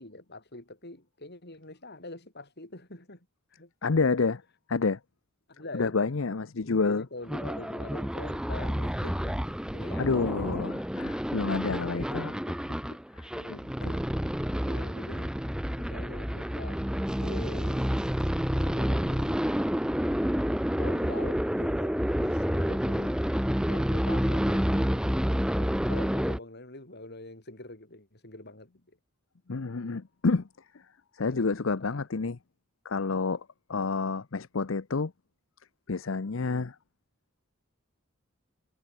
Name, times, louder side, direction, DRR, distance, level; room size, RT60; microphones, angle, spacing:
voice 1, 0.0-3.7 5.5-6.0 6.6-10.6 11.8-12.1 12.5-12.6 12.9-13.0 13.3-13.9 14.7-15.3 15.8-16.8 17.2-17.9 18.6-19.5 20.8-23.1 23.6-25.3 25.5-29.0 31.3-32.0, left 2 dB, 55° left, 5.5 m, -45 dB
voice 2, 3.8-4.4 4.7-5.0 5.7-7.0 10.0-12.4 13.5-14.0 29.5-30.4 31.1-32.4 32.8-33.4 33.7-35.1 35.9-36.8, left 4 dB, 70° left, 0.7 m, -29 dB
sound 1, 7.3-26.4, equal, 5° right, 1.0 m, -29 dB
head